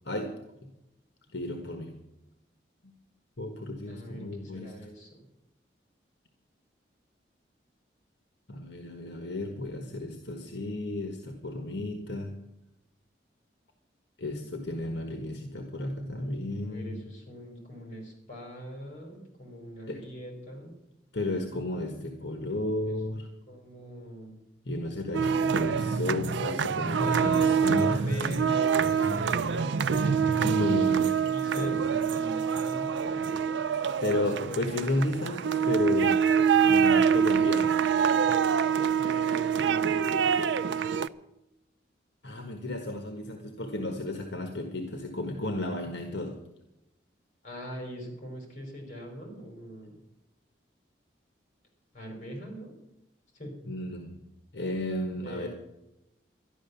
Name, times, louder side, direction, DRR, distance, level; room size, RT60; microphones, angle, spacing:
voice 1, 1.3-1.9 2.8-2.9 3.4-4.7 8.5-12.3 14.2-17.0 19.9-20.0 21.1-23.3 24.6-28.1 28.8-29.4 30.4-31.2 31.6-31.9 34.0-36.2 36.6-37.8 42.2-46.4 53.6-54.2 54.5-55.5, left 2 dB, 70° left, 4 dB, 1.5 m, -33 dB
voice 2, 3.9-5.2 16.6-20.7 22.9-23.0 23.5-24.4 27.0-30.8 31.2-33.4 34.1-34.9 36.5-37.5 38.9-40.2 47.4-50.0 51.9-52.7 53.3-53.5 55.2-55.5, equal, 40° left, 1 dB, 5.1 m, -41 dB
sound 1, 25.1-41.1, right 7 dB, 80° right, 0.5 m, -25 dB
12.5 x 11.0 x 7.0 m, 0.90 s
head